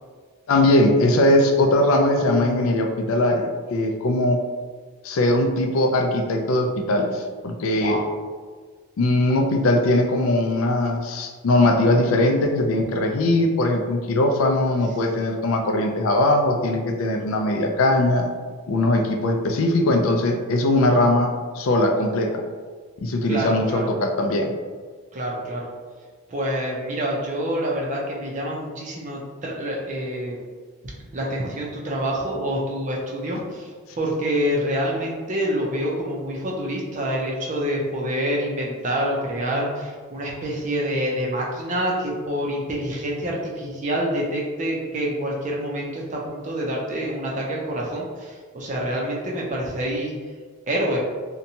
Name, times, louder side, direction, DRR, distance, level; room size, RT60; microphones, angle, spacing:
voice 1, 0.5-4.4 5.0-8.0 9.0-18.3 18.7-22.4 23.0-24.5, left 1 dB, 70° left, 3 dB, 0.3 m, -20 dB
voice 2, 7.7-8.1 15.0-15.3 23.3-23.9 25.1-25.7 26.3-30.4 31.1-33.7 34.0-50.1 50.7-51.0, equal, 35° right, -3 dB, 0.5 m, -27 dB
2.8 x 2.2 x 2.6 m, 1.5 s
head